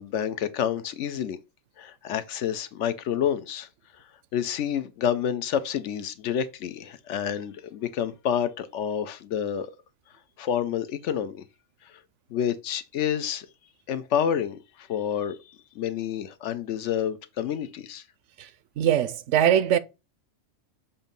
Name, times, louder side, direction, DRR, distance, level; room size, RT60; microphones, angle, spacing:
voice 1, 0.0-1.4 1.8-3.7 4.3-9.7 10.4-11.4 12.3-13.5 13.9-14.6 14.9-15.4 15.8-18.0, left 9 dB, 70° left, 0.9 m, -28 dB
voice 2, 18.8-19.8, right 10 dB, 75° right, 0.9 m, -21 dB
7.2 x 2.7 x 5.2 m
omnidirectional pair, 1.3 m